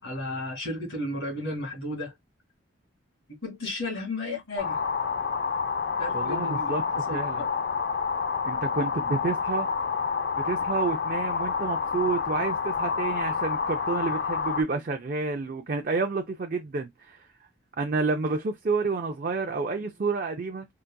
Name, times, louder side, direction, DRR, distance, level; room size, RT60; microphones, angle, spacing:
voice 1, 0.0-2.1 3.4-4.8 6.0-7.5, left 1 dB, 75° left, 2.1 m, -34 dB
sound 1, 4.6-14.6, left 5 dB, 50° left, 0.3 m, -28 dB
voice 2, 6.1-7.4 8.4-9.7 10.4-17.3 17.8-20.7, right 4 dB, 45° right, 0.4 m, -29 dB
3.9 x 2.4 x 2.2 m
head